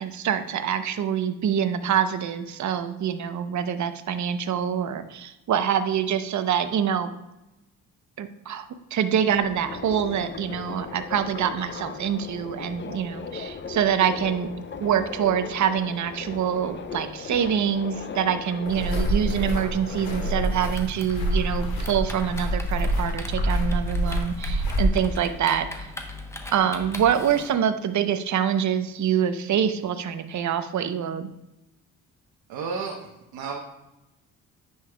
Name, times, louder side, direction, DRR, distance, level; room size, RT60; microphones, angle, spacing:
voice 1, 0.0-7.1 8.2-8.7 8.9-14.5 14.8-25.9 26.5-31.3, right 8 dB, 55° right, 10 dB, 0.7 m, -25 dB
Subway metro underground, 9.3-20.7, left 5 dB, 30° left, 0.6 m, -37 dB
sound 1, 18.6-24.9, equal, 70° left, 2.1 m, -27 dB
Typing, 20.7-27.5, left 2 dB, 10° left, 0.9 m, -40 dB
voice 2, 32.5-33.6, right 5 dB, 80° right, -1 dB, 1.0 m, -32 dB
9.6 x 5.6 x 2.2 m, 0.95 s
cardioid pair, 90°, 35 cm